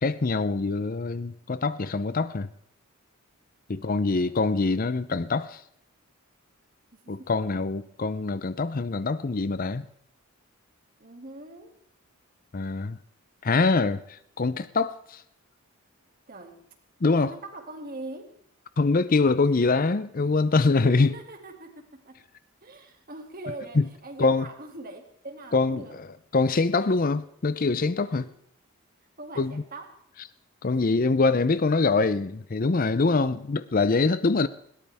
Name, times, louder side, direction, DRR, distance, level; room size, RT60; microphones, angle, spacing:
voice 1, 0.0-2.5 3.7-5.6 7.1-9.8 12.5-13.0 13.4-15.2 17.0-17.3 18.8-21.1 23.8-23.9 24.2-24.4 25.5-26.1 26.3-28.3 29.4-29.6 30.6-34.5, left 3 dB, 40° left, 0.5 m, -24 dB
voice 2, 3.7-4.6 6.9-7.3 11.0-11.8 16.3-16.6 17.2-18.3 20.8-22.2 22.6-26.0 28.1-28.3 29.2-30.0 30.8-31.0 33.1-33.4, right 2 dB, 40° right, 2.5 m, -42 dB
21.0 x 17.5 x 3.5 m
head